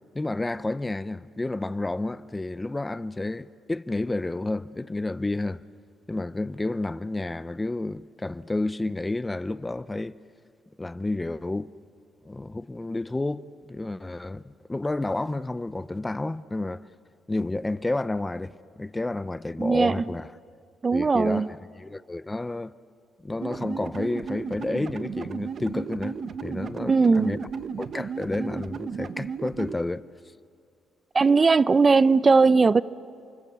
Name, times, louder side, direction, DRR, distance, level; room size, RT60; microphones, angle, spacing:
voice 1, 0.1-5.6 6.1-10.2 10.8-11.7 12.2-16.8 17.3-20.3 20.9-22.7 23.2-27.4 27.8-30.0, left 2 dB, 15° left, 0.7 m, -30 dB
voice 2, 19.6-20.0 20.8-21.5 26.9-27.4 31.1-32.8, right 4 dB, 30° right, 0.6 m, -19 dB
sound 1, 23.4-29.7, right 6 dB, 55° right, 1.3 m, -34 dB
30.0 x 23.5 x 8.3 m
cardioid pair, 90°, 0 cm